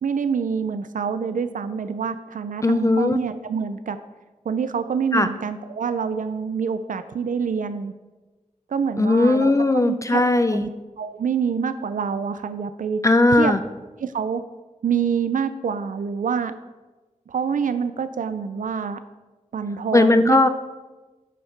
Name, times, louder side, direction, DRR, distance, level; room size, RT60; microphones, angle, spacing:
voice 1, 0.0-4.0 4.5-7.9 8.7-10.2 10.5-10.7 11.0-13.0 13.4-13.6 14.0-14.4 14.8-16.5 17.3-19.0 19.5-20.4, right 6 dB, 90° right, 11 dB, 0.4 m, -26 dB
voice 2, 2.6-3.2 5.1-5.3 9.0-10.6 13.0-13.6 19.9-20.5, left 2 dB, 25° left, 9 dB, 0.4 m, -18 dB
8.3 x 5.6 x 5.8 m, 1.2 s
wide cardioid pair, 105°, 13 cm